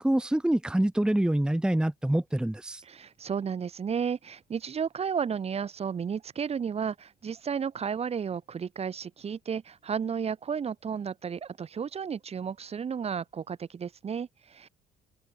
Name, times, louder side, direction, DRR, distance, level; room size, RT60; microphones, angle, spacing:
voice 1, 0.0-2.8, right 1 dB, 5° right, 1.2 m, -26 dB
voice 2, 2.8-14.7, right 7 dB, 35° right, 2.6 m, -33 dB
cardioid pair, 110°, 17 cm